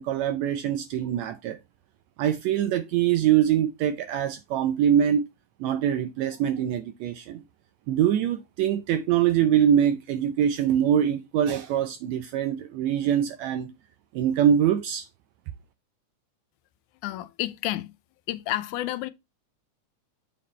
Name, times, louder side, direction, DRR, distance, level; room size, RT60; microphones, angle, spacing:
voice 1, 0.0-1.6 2.2-5.3 5.6-7.4 7.9-13.7 14.1-15.1, right 9 dB, 80° right, 1.7 m, -24 dB
voice 2, 17.0-17.9 18.3-19.1, left 15 dB, 90° left, 2.1 m, -30 dB
7.4 x 4.3 x 4.0 m
omnidirectional pair, 3.4 m